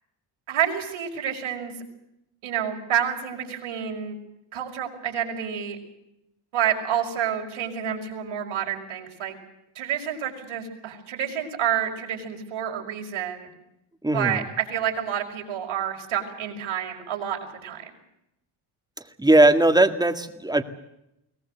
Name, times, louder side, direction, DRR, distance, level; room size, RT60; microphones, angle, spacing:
voice 1, 0.5-1.7 2.4-4.2 4.5-5.8 6.5-9.3 9.8-13.5 14.1-17.9, right 9 dB, 70° right, 2 dB, 5.8 m, -29 dB
voice 2, 14.0-14.4 19.2-20.6, right 2 dB, 10° right, 8 dB, 1.8 m, -19 dB
23.0 x 19.0 x 8.0 m, 0.84 s
cardioid pair, 125°, 49 cm